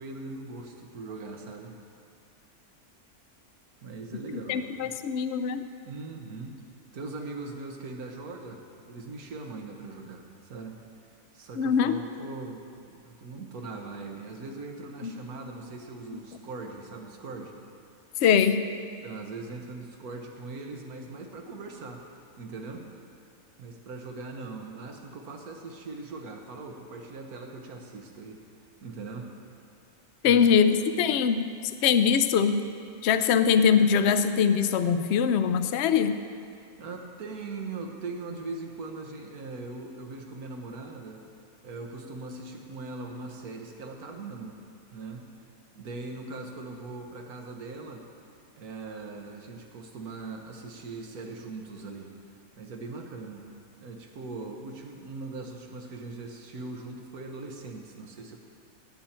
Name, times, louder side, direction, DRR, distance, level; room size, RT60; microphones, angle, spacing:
voice 1, 0.0-1.8 3.8-4.9 5.8-6.6 6.9-10.8 11.3-17.6 19.0-22.0 22.4-22.9 23.6-28.4 28.8-29.3 30.2-30.6 36.8-41.2 41.6-44.6 44.9-45.3 45.7-48.1 48.6-52.1 52.6-53.5 53.8-58.4, right 3 dB, 80° right, 3 dB, 1.6 m, -40 dB
voice 2, 4.5-5.7 11.6-12.0 15.0-15.1 16.1-16.2 18.2-18.6 30.2-31.5 31.8-32.6 33.0-36.2, left 7 dB, 60° left, 10 dB, 0.7 m, -22 dB
17.0 x 8.8 x 4.4 m, 2.5 s
omnidirectional pair, 1.5 m